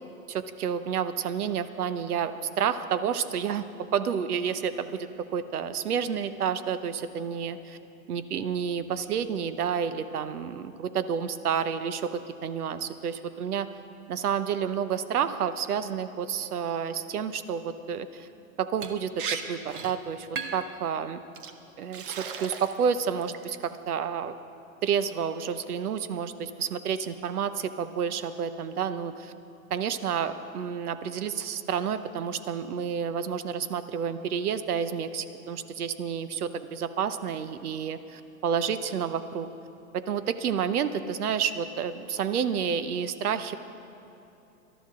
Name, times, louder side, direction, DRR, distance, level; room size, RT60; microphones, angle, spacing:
voice 1, 0.3-3.6 3.9-7.8 8.1-13.7 14.1-18.3 18.6-19.2 19.5-21.2 21.8-24.3 24.8-29.3 29.7-39.5 39.9-43.6, right 7 dB, 85° right, 12 dB, 0.9 m, -30 dB
Liquid, 18.8-18.9 19.2-19.4 19.7-19.9 20.4-20.7 21.3-21.5 21.9-22.8 23.2-23.6, right 7 dB, 40° right, 0.6 m, -35 dB
19.5 x 12.5 x 3.7 m, 2.9 s
hypercardioid pair, 160°, 44 cm